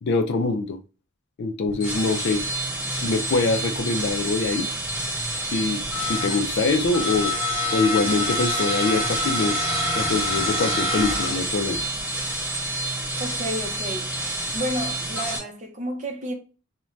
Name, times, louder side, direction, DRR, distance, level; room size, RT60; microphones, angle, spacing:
voice 1, 0.0-0.8 1.4-2.4 2.9-4.7 5.4-7.3 7.7-9.6 10.0-11.8, left 3 dB, 55° left, 0.4 m, -24 dB
sound 1, 1.7-15.4, equal, 10° right, 1.0 m, -27 dB
voice 2, 13.2-14.1 14.5-16.3, equal, 35° right, 0.6 m, -31 dB
2.5 x 2.2 x 3.1 m
head